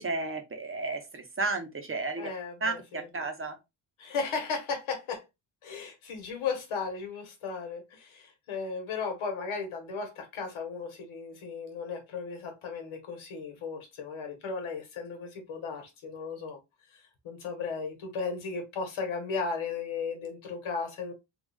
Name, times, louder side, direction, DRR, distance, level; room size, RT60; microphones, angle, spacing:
voice 1, 0.0-2.3 2.6-3.6, right 3 dB, 25° right, 0.8 m, -33 dB
voice 2, 2.2-3.1 4.0-5.2 5.6-16.6 16.9-21.1, left 5 dB, 85° left, 1.5 m, -35 dB
3.5 x 2.4 x 3.4 m
cardioid pair, 135°, 47 cm